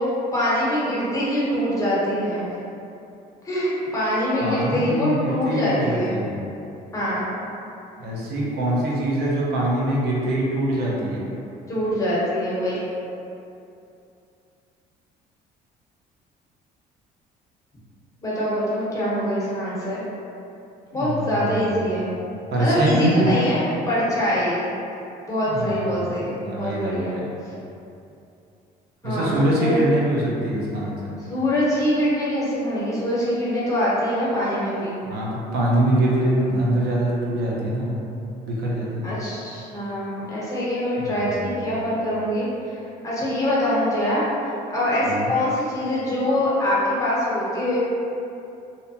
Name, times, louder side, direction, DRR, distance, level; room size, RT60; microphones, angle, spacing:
voice 1, 0.0-2.4 3.4-6.2 6.9-7.3 11.7-12.8 18.2-20.0 20.9-22.1 22.6-24.7 25.3-27.2 29.0-29.8 31.2-35.0 39.0-44.2 44.7-47.8, equal, 20° left, -8 dB, 0.9 m, -24 dB
voice 2, 4.4-6.4 8.0-11.3 20.9-22.0 22.5-23.3 25.5-27.3 29.0-31.1 35.1-38.0 38.5-39.1 41.0-41.7 45.0-45.3, right 1 dB, 70° right, -4 dB, 0.6 m, -24 dB
2.7 x 2.1 x 2.7 m, 2.7 s
cardioid pair, 110°, 17 cm